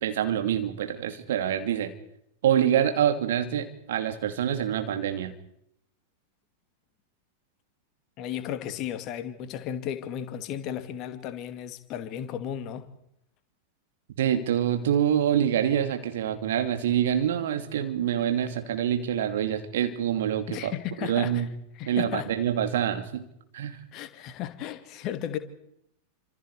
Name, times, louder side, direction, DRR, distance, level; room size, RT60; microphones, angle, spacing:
voice 1, 0.0-1.9 2.4-5.3 14.2-20.7 21.1-21.5 21.9-23.2 23.5-23.8, right 10 dB, 60° right, 2.7 m, -26 dB
voice 2, 8.2-12.9 20.5-21.4 21.8-22.3 23.9-25.4, left 10 dB, 40° left, 2.4 m, -34 dB
28.5 x 26.5 x 4.9 m
figure-of-eight pair, 90°, 0 cm